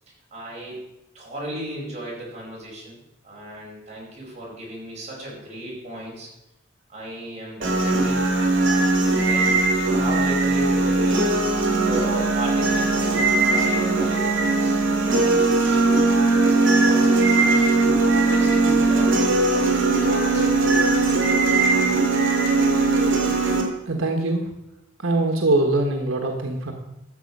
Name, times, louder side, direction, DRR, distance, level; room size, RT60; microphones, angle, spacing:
voice 1, 0.1-0.9 1.1-3.0 3.2-6.3 6.9-8.3 9.2-14.7 15.0-16.1 16.5-20.7, right 1 dB, 35° right, -4 dB, 4.7 m, -36 dB
sound 1, 7.6-23.6, right 3 dB, 70° right, 2.3 m, -19 dB
voice 2, 23.9-24.5 25.0-26.7, right 2 dB, 85° right, 3 dB, 1.3 m, -22 dB
13.0 x 7.4 x 5.3 m, 0.91 s
head